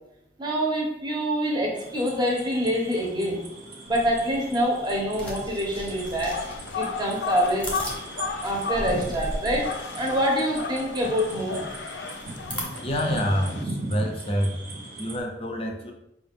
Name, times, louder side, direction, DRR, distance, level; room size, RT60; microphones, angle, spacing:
voice 1, 0.4-3.4 3.9-6.4 6.7-7.7 8.4-9.7 9.9-11.6, equal, 25° right, -1 dB, 0.8 m, -25 dB
sound 1, 1.8-15.2, right 2 dB, 50° right, 0.8 m, -40 dB
sound 2, 3.9-12.6, equal, 10° left, 0.9 m, -39 dB
sound 3, 6.0-13.6, left 5 dB, 85° left, 0.4 m, -35 dB
voice 2, 12.8-14.6 15.0-15.9, equal, 30° left, 3 dB, 0.6 m, -27 dB
4.8 x 2.4 x 3.5 m, 0.84 s
head